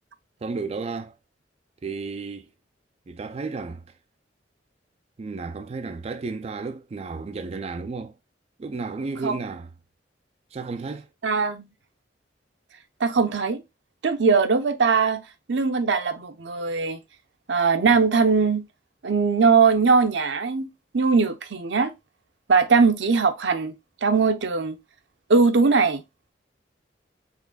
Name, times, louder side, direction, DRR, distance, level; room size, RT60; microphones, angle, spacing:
voice 1, 0.4-1.1 1.8-2.5 3.1-3.8 5.2-8.1 8.6-9.7 10.5-11.1, right 4 dB, 35° right, 0.4 m, -33 dB
voice 2, 11.2-11.7 13.0-13.6 14.0-17.0 17.5-18.6 19.0-21.9 22.5-23.7 24.0-24.8 25.3-26.0, right 4 dB, 75° right, 0.7 m, -20 dB
5.0 x 3.6 x 2.2 m
head